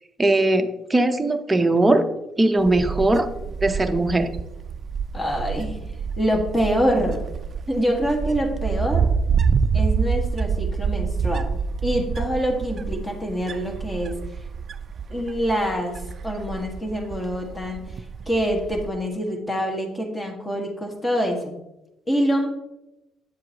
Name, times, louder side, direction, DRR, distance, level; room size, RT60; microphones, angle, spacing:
voice 1, 0.2-2.1 2.4-3.3 3.6-4.3, right 2 dB, 15° right, 6 dB, 0.7 m, -19 dB
Wind, 2.6-18.9, right 6 dB, 40° right, 0.4 m, -27 dB
voice 2, 5.1-5.8 6.2-7.2 7.7-9.0 9.7-11.5 11.8-14.2 15.1-17.8 18.3-21.5 22.1-22.5, equal, 15° left, 2 dB, 1.6 m, -25 dB
9.2 x 7.6 x 2.9 m, 0.90 s
cardioid pair, 105°, 0 cm